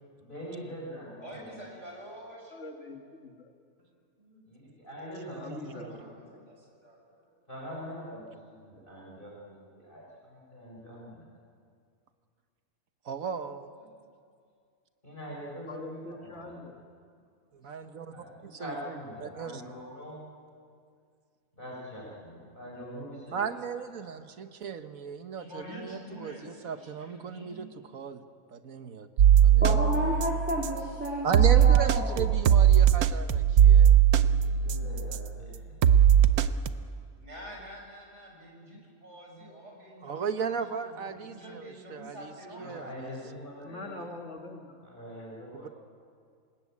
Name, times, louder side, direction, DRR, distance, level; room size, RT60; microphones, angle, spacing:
voice 1, 0.2-1.5 4.2-6.0 7.5-11.3 15.0-16.6 18.1-20.2 21.6-23.5 24.1-24.2 34.3-35.9 36.7-36.8 42.5-44.0 44.8-45.7, equal, 35° left, -4 dB, 5.3 m, -43 dB
voice 2, 1.2-2.5 5.7-7.0 25.3-27.7 37.2-43.0, equal, 55° right, -1 dB, 7.1 m, -47 dB
voice 3, 2.5-3.5 5.3-6.5 15.7-16.8 43.6-44.8, left 3 dB, 55° left, 2 dB, 2.0 m, -44 dB
voice 4, 5.3-5.9 13.0-13.7 17.5-18.1 18.4-18.9 19.2-19.6 23.3-27.7 27.9-28.2 28.5-29.1 29.4-29.8 31.2-34.0 40.0-42.3 42.6-42.9 45.5-45.7, right 6 dB, 70° right, 9 dB, 1.5 m, -36 dB
sound 1, 29.2-30.8 31.3-35.3 35.8-36.7, right 9 dB, 85° right, 1.3 m, -20 dB
voice 5, 29.6-32.2, equal, 5° right, -4 dB, 3.4 m, -31 dB
28.0 x 19.5 x 8.6 m, 2.2 s
omnidirectional pair, 1.5 m